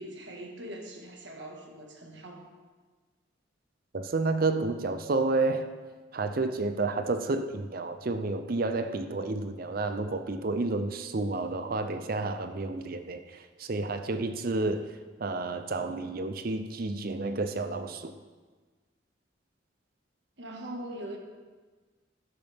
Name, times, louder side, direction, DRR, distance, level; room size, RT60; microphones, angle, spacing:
voice 1, 0.0-2.5 20.4-21.2, right 1 dB, 70° right, 2 dB, 1.7 m, -41 dB
voice 2, 3.9-5.7 6.1-14.8 15.2-18.1, right 3 dB, 50° right, 9 dB, 0.6 m, -30 dB
13.5 x 11.0 x 3.6 m, 1.4 s
head